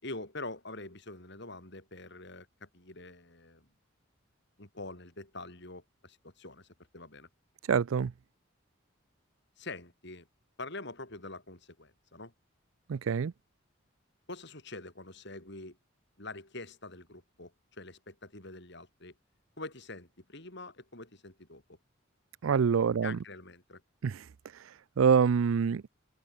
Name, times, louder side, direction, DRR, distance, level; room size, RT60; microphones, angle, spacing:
voice 1, 0.0-3.7 4.6-7.3 9.6-10.3 10.6-12.3 14.3-15.8 16.2-19.1 19.6-21.8 23.0-23.8, left 2 dB, 55° left, 6.3 m, -45 dB
voice 2, 7.7-8.1 12.9-13.3 22.4-23.2 24.0-24.2 25.0-25.9, right 6 dB, 80° right, 0.4 m, -25 dB
open air
head